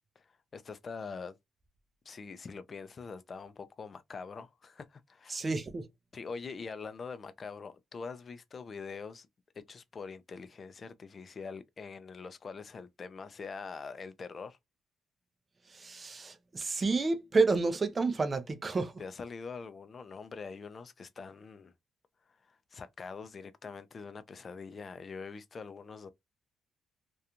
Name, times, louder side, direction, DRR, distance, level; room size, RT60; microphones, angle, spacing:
voice 1, 0.2-1.4 2.1-5.5 6.1-9.3 9.7-14.6 19.0-21.7 22.4-26.1, left 5 dB, 35° left, 0.4 m, -44 dB
voice 2, 5.3-5.9 15.7-18.9, right 3 dB, 30° right, 0.5 m, -30 dB
2.4 x 2.2 x 2.8 m
cardioid pair, 120°, 0 cm